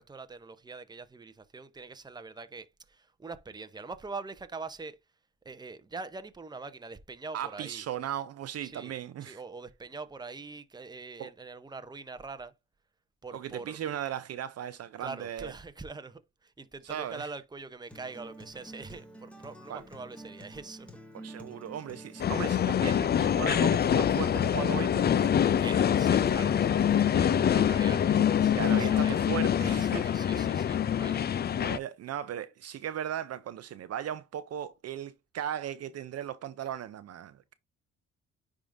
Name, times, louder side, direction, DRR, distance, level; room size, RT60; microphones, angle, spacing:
voice 1, 0.0-5.0 5.4-7.9 8.6-8.9 9.2-12.5 13.2-13.8 15.0-21.0 25.6-29.2 29.7-31.3, right 4 dB, 15° right, 0.7 m, -43 dB
voice 2, 7.3-9.4 11.2-11.3 13.3-15.5 16.9-17.3 19.7-19.8 21.2-25.3 28.6-30.1 31.6-37.5, right 10 dB, 55° right, 0.5 m, -37 dB
Acoustic guitar, 17.9-25.9, right 1 dB, 5° left, 1.3 m, -48 dB
sound 1, 22.2-31.8, left 9 dB, 35° left, 0.4 m, -25 dB
9.9 x 3.7 x 2.6 m
cardioid pair, 90°, 30 cm